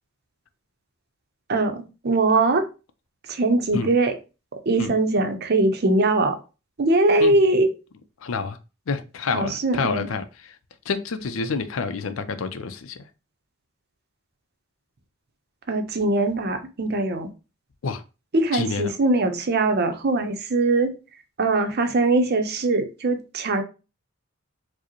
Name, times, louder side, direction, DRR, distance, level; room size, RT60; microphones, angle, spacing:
voice 1, 1.5-2.6 3.3-4.1 4.7-6.4 6.8-7.7 9.3-10.1 15.7-17.3 18.3-20.9 21.4-23.6, right 2 dB, 50° right, 0.6 m, -21 dB
voice 2, 8.2-8.6 8.9-10.6 10.8-13.1 17.8-18.0 18.5-19.0, left 4 dB, 80° left, 0.5 m, -28 dB
4.7 x 2.1 x 3.0 m
head